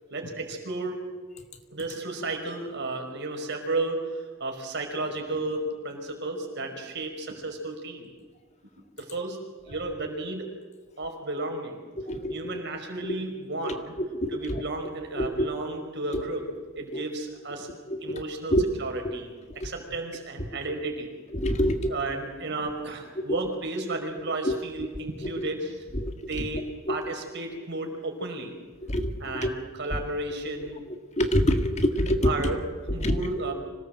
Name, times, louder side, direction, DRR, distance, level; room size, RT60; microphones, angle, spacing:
voice 1, 0.1-1.0 1.7-8.1 9.0-10.5 11.0-11.8 12.3-14.0 14.3-17.7 18.0-21.1 21.9-25.9 26.2-28.6 29.2-30.8 32.0-33.5, right 2 dB, 55° right, 3 dB, 5.2 m, -33 dB
voice 2, 21.4-21.9 26.0-26.1 28.9-29.0 31.2-32.3 33.0-33.1, equal, 30° left, 5 dB, 1.9 m, -23 dB
26.0 x 18.5 x 7.8 m, 1.4 s
head